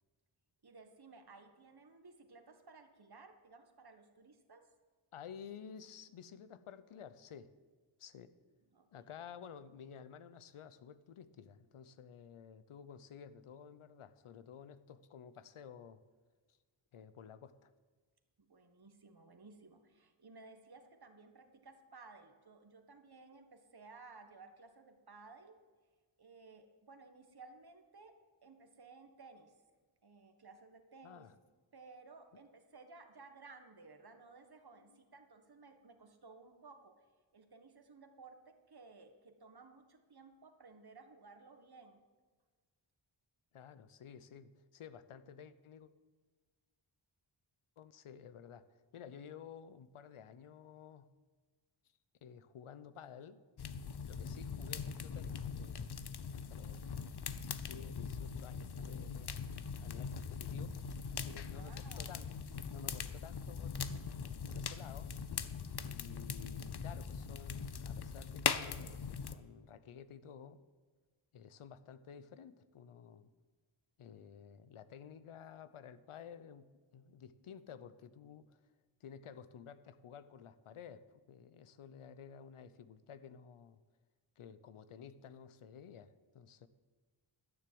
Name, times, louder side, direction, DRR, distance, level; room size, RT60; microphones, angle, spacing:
voice 1, 0.6-4.7 8.7-8.9 18.4-25.6 26.2-29.6 30.0-31.3 31.7-37.0 37.3-42.0 61.3-62.2, right 3 dB, 50° right, 7 dB, 1.5 m, -57 dB
voice 2, 5.1-7.5 8.0-8.3 8.9-16.0 16.9-17.7 31.0-31.3 34.8-35.0 43.5-45.9 47.8-51.1 52.2-53.4 54.1-56.0 56.3-56.9 57.3-59.3 59.8-60.8 61.1-63.7 64.2-65.1 65.8-70.6 71.3-73.3 74.0-78.6 79.0-83.8 84.4-86.7, left 7 dB, 85° left, 14 dB, 0.7 m, -53 dB
sound 1, 53.6-69.3, left 6 dB, 50° left, 0.8 m, -41 dB
12.5 x 6.9 x 7.7 m, 1.4 s
cardioid pair, 55°, 50 cm